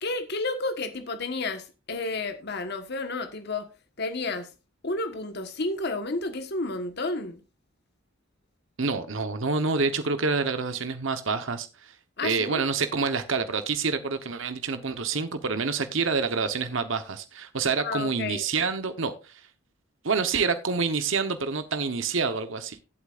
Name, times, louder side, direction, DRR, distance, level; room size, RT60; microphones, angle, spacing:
voice 1, 0.0-3.7 4.0-4.5 4.8-7.4 12.2-12.6 17.8-18.4, left 2 dB, 55° left, 1.4 m, -31 dB
voice 2, 8.8-12.0 12.2-19.5 20.0-22.8, right 4 dB, 65° right, 1.0 m, -27 dB
16.0 x 8.5 x 2.5 m
head